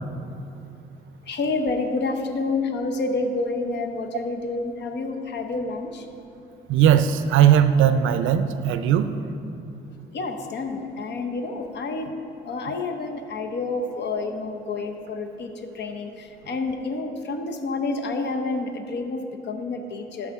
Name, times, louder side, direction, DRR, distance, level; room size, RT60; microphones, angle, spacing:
voice 1, 1.3-6.0 10.1-12.1 12.4-20.3, left 3 dB, 60° left, 5 dB, 0.8 m, -29 dB
voice 2, 6.7-9.1, right 9 dB, 80° right, 11 dB, 0.4 m, -18 dB
12.5 x 4.8 x 3.6 m, 2.6 s
cardioid pair, 90°, 20 cm